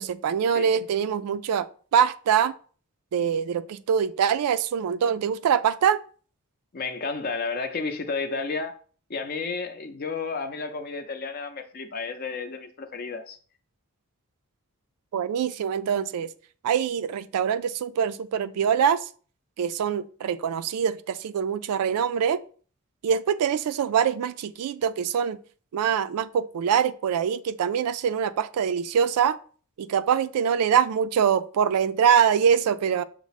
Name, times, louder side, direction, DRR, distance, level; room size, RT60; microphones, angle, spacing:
voice 1, 0.0-1.7 1.9-2.5 3.1-6.0 15.1-16.3 16.6-19.0 19.6-22.4 23.0-25.4 25.7-29.4 29.8-33.0, right 8 dB, 85° right, 0.3 m, -24 dB
voice 2, 0.5-0.9 6.7-8.7 9.1-13.4, left 4 dB, 40° left, 0.5 m, -32 dB
5.9 x 2.0 x 4.0 m
head